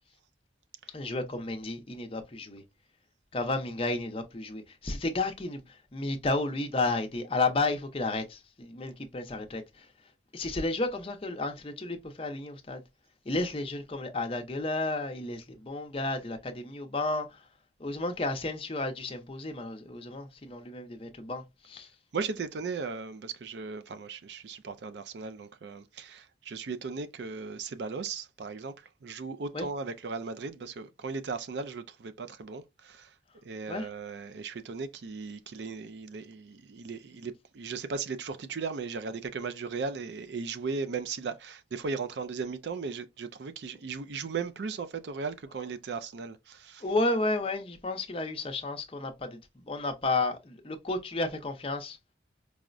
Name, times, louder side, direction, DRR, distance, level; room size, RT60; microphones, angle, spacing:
voice 1, 0.9-2.6 3.3-9.9 10.3-12.8 13.3-17.4 17.8-21.9 29.5-29.7 33.7-33.9 46.8-49.4 49.7-52.0, left 2 dB, 30° left, 0.6 m, -32 dB
voice 2, 22.1-33.1 33.4-46.8, right 4 dB, 65° right, 0.4 m, -37 dB
4.7 x 2.1 x 2.4 m
head